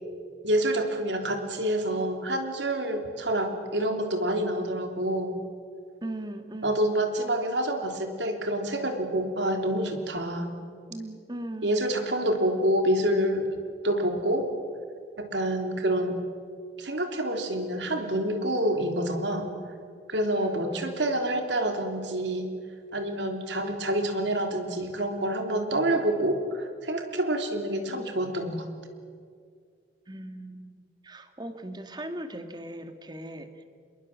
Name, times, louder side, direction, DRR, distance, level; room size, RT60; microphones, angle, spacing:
voice 1, 0.4-5.4 6.6-10.6 11.6-13.6 13.8-14.5 15.2-16.2 16.8-19.5 20.1-22.5 22.9-28.7, right 1 dB, 80° right, 5 dB, 3.4 m, -27 dB
voice 2, 6.0-7.0 10.9-11.8 20.3-21.0 27.8-28.2 30.1-33.6, right 1 dB, 25° right, 8 dB, 1.7 m, -39 dB
27.5 x 22.0 x 7.4 m, 2.1 s
head